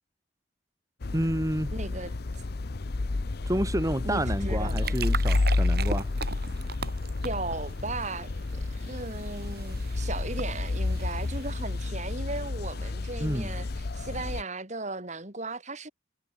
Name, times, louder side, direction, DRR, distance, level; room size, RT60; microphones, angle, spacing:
sound 1, 1.0-14.4, left 2 dB, 55° left, 0.7 m, -30 dB
voice 1, 1.1-1.7 3.4-6.1 13.2-13.5, right 1 dB, 15° right, 2.6 m, -29 dB
voice 2, 1.7-2.1 4.0-5.0 7.2-15.9, right 2 dB, 40° right, 6.5 m, -37 dB
sound 2, 4.4-12.0, right 5 dB, 55° right, 3.3 m, -40 dB
head